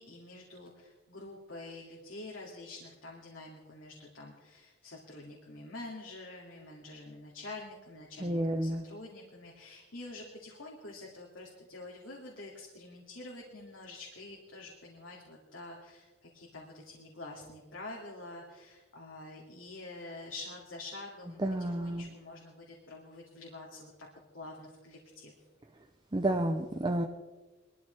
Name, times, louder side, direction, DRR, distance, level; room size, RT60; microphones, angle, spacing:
voice 1, 0.0-23.9 24.3-25.3, left 2 dB, 70° left, -3 dB, 2.6 m, -47 dB
voice 2, 8.2-8.8 21.4-22.1 26.1-27.0, right 1 dB, 25° right, 4 dB, 0.7 m, -30 dB
22.0 x 13.5 x 3.5 m, 1.2 s
head